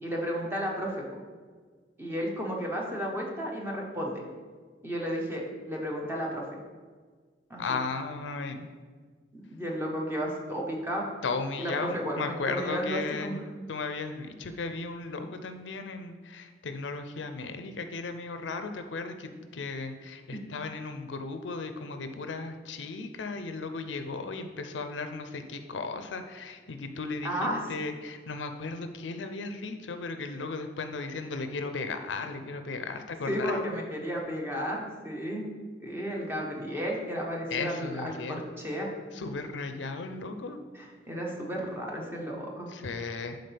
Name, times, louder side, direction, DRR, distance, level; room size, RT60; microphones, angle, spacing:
voice 1, 0.0-1.1 2.0-4.2 4.8-6.4 7.5-7.6 9.3-11.1 11.6-13.4 20.3-20.4 27.2-27.6 33.3-35.4 35.8-38.9 40.7-42.7, equal, 10° right, -2 dB, 1.1 m, -33 dB
voice 2, 7.6-8.7 11.2-13.4 13.7-33.6 37.5-38.4 39.1-40.6 42.7-43.4, left 4 dB, 75° left, 8 dB, 0.5 m, -35 dB
11.0 x 4.0 x 3.4 m, 1.5 s
head